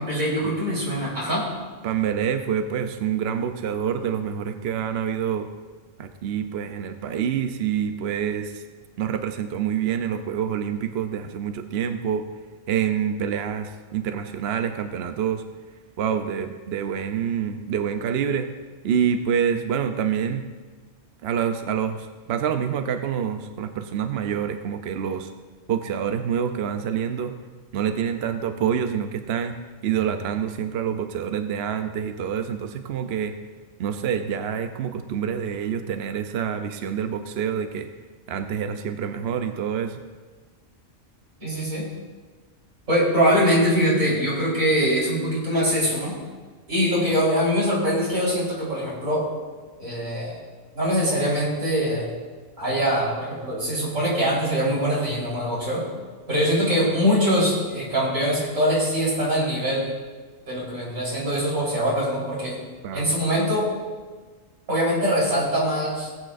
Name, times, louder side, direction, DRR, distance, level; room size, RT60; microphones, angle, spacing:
voice 1, 0.0-1.4 41.4-41.9 42.9-46.2 46.7-49.2 49.8-50.4 50.7-52.1 52.6-55.8 56.3-59.9 60.5-62.5 62.9-63.7 64.7-66.2, equal, 90° right, -6 dB, 4.5 m, -23 dB
voice 2, 1.8-5.5 6.0-8.6 9.0-12.3 12.7-15.4 16.0-18.5 18.8-20.4 21.2-25.3 25.7-27.3 27.7-29.6 29.8-33.3 33.8-37.9 38.3-40.0 62.8-63.2, right 8 dB, 60° right, 7 dB, 0.8 m, -27 dB
18.5 x 8.7 x 2.6 m, 1.4 s
omnidirectional pair, 1.3 m